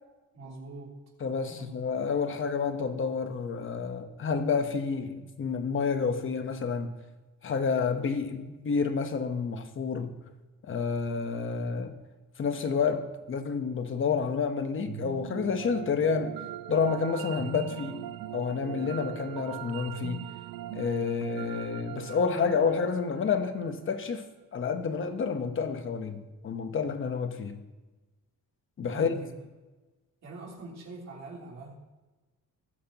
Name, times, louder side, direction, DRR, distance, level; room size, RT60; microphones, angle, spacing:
voice 1, 0.3-1.0 1.5-2.0 28.9-29.4 30.2-31.7, right 3 dB, 50° right, 3.4 m, -43 dB
voice 2, 1.2-7.0 7.4-10.2 10.6-12.0 12.4-16.3 16.7-20.3 20.7-24.3 24.5-27.6 28.8-29.1, left 5 dB, 35° left, 1.1 m, -29 dB
sound 1, 14.9-24.0, right 13 dB, 75° right, 0.5 m, -40 dB
19.5 x 9.3 x 3.0 m
cardioid pair, 165°, 34 cm